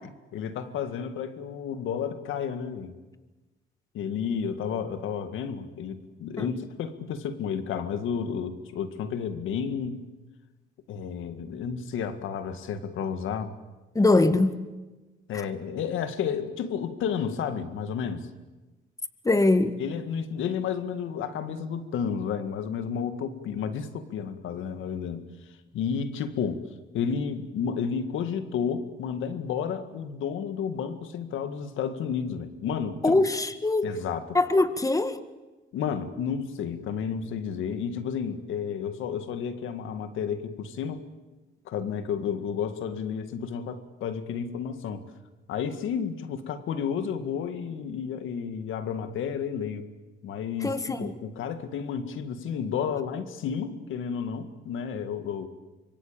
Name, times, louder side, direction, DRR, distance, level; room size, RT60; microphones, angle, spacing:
voice 1, 0.3-3.0 3.9-10.0 10.9-13.5 15.3-18.3 19.8-25.2 25.7-26.6 26.9-33.2 33.8-34.4 35.7-41.0 41.7-45.0 45.5-49.9 50.2-55.5, left 7 dB, 80° left, 10 dB, 2.0 m, -31 dB
voice 2, 14.0-14.6 19.3-19.8 33.0-33.9 34.3-35.2 50.6-51.1, left 2 dB, 15° left, 11 dB, 1.7 m, -22 dB
25.5 x 23.5 x 8.9 m, 1.2 s
cardioid pair, 90°, 20 cm